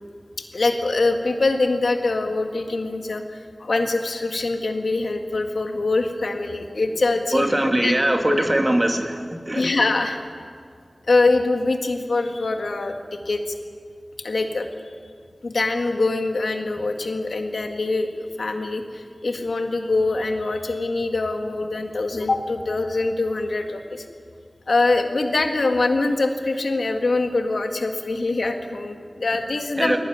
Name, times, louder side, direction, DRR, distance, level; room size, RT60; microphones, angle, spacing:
voice 1, 0.5-7.5 7.8-7.9 8.3-8.5 9.5-10.2 11.1-13.6 14.2-14.7 15.4-24.0 24.7-30.0, left 3 dB, 85° left, 5 dB, 2.0 m, -23 dB
voice 2, 7.3-9.7 29.8-30.0, right 1 dB, 25° right, 4 dB, 2.6 m, -21 dB
21.0 x 17.5 x 9.6 m, 2.1 s
wide cardioid pair, 55°, 0 cm